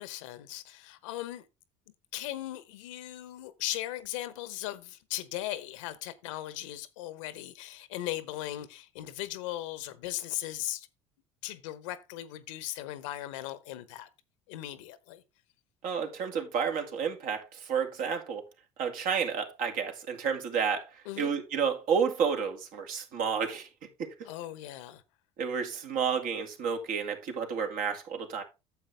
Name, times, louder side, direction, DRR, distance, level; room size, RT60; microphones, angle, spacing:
voice 1, 0.0-1.4 2.1-10.9 11.4-14.1 14.5-15.2 21.0-21.3 24.2-25.0, left 14 dB, 80° left, 1.0 m, -38 dB
voice 2, 15.8-18.4 18.8-20.9 21.2-23.7 24.0-24.1 25.4-28.4, right 6 dB, 60° right, 2.3 m, -30 dB
9.4 x 7.4 x 3.4 m
hypercardioid pair, 75°, 16 cm